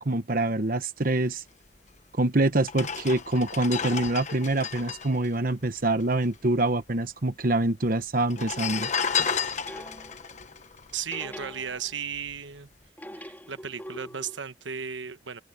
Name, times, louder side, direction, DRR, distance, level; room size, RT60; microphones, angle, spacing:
voice 1, 0.0-1.4 2.2-8.9, right 2 dB, 50° right, 1.1 m, -25 dB
sound 1, 2.0-2.1 2.6-6.3 6.6-6.7 6.8-7.5 8.2-11.7 12.1-12.4, left 6 dB, 40° left, 1.2 m, -32 dB
sound 2, 9.1-10.3 11.1-12.2 13.0-14.4, equal, 10° left, 4.4 m, -43 dB
voice 2, 10.9-12.7 13.1-15.4, right 7 dB, 90° right, 1.2 m, -35 dB
head